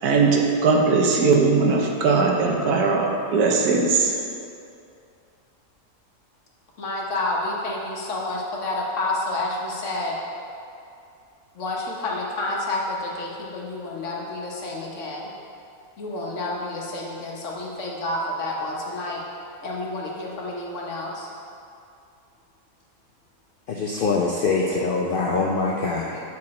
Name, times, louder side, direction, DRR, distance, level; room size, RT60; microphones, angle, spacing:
voice 1, 0.0-4.1, right 4 dB, 90° right, 1 dB, 1.3 m, -19 dB
voice 2, 6.8-10.2 11.6-15.3 16.0-19.2 19.6-21.3, left 2 dB, 55° left, -2 dB, 1.2 m, -29 dB
voice 3, 23.7-26.2, left 3 dB, 85° left, -1 dB, 0.4 m, -24 dB
7.2 x 4.8 x 4.2 m, 2.5 s
omnidirectional pair, 1.6 m